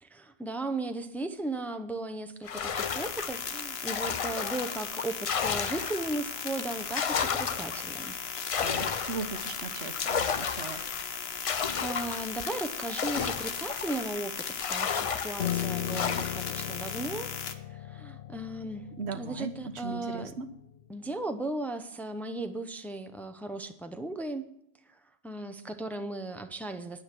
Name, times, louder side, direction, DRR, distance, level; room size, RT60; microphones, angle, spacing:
voice 1, 0.0-8.2 11.5-18.9 19.2-20.3 20.9-24.5 25.2-27.0, right 2 dB, ahead, 7 dB, 0.7 m, -36 dB
sound 1, 2.5-6.3 6.7-14.2 14.6-16.6, left 6 dB, 45° left, 0.5 m, -33 dB
sound 2, 2.8-17.5, left 6 dB, 65° left, 1.2 m, -37 dB
voice 2, 8.6-10.8 19.0-20.5, right 5 dB, 80° right, 10 dB, 1.2 m, -38 dB
Piano, 15.4-20.7, left 11 dB, 90° left, 1.0 m, -37 dB
10.0 x 9.9 x 6.1 m, 0.76 s
omnidirectional pair, 1.1 m